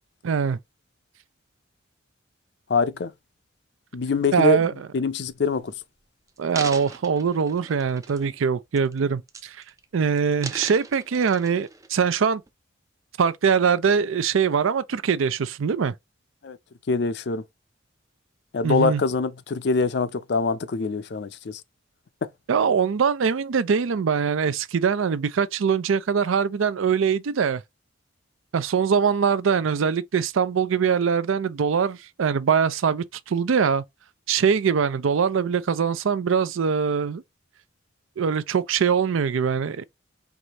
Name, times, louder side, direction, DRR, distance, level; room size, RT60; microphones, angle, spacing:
voice 1, 0.2-0.6 4.3-4.7 6.4-9.6 9.9-12.4 13.2-15.9 18.6-19.0 22.5-27.6 28.5-33.8 34.3-37.2 38.2-39.8, right 6 dB, 85° right, 0.4 m, -22 dB
voice 2, 2.7-3.1 3.9-4.6 4.9-5.7 16.4-16.6 16.9-17.4 18.5-21.6, left 3 dB, 55° left, 0.4 m, -24 dB
sound 1, 5.3-5.7 6.3-8.4 8.7-9.0 9.3-9.8 10.2-11.9 12.5-12.6, right 4 dB, 15° right, 0.3 m, -38 dB
4.7 x 2.6 x 2.9 m
head